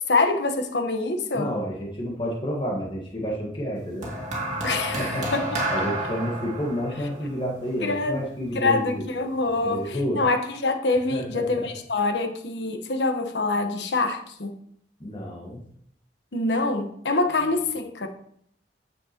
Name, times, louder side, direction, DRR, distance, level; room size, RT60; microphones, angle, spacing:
voice 1, 0.1-1.5 4.6-5.6 7.8-8.2 8.5-14.5 16.3-18.1, left 3 dB, 80° left, 6 dB, 1.1 m, -25 dB
voice 2, 1.3-4.1 4.9-5.3 5.7-9.0 9.6-10.2 11.1-11.7 15.0-15.6, equal, 30° left, -2 dB, 1.5 m, -30 dB
sound 1, 4.0-8.5 9.4-9.6, right 1 dB, 45° right, 2.3 m, -30 dB
9.7 x 7.6 x 2.9 m, 0.67 s
head